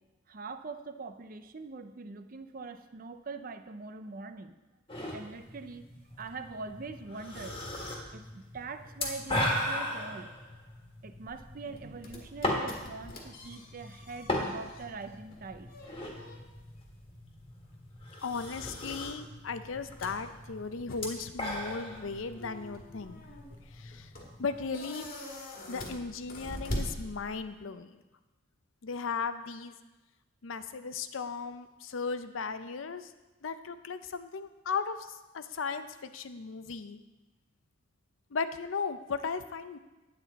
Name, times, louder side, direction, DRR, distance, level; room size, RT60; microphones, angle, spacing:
voice 1, 0.3-4.6 5.1-5.9 6.2-7.6 8.1-10.3 11.0-15.7, right 4 dB, 45° right, 9 dB, 0.5 m, -43 dB
sound 1, 4.9-24.6, left 1 dB, 25° left, 1.6 m, -38 dB
sound 2, 11.3-27.7, left 1 dB, 45° left, 1.6 m, -45 dB
voice 2, 18.2-23.2 23.7-24.1 24.4-25.1 25.7-28.0 28.8-29.8 30.4-33.1 33.4-37.0 38.3-39.8, left 5 dB, 80° left, 11 dB, 0.6 m, -36 dB
9.5 x 9.0 x 4.1 m, 1.1 s
head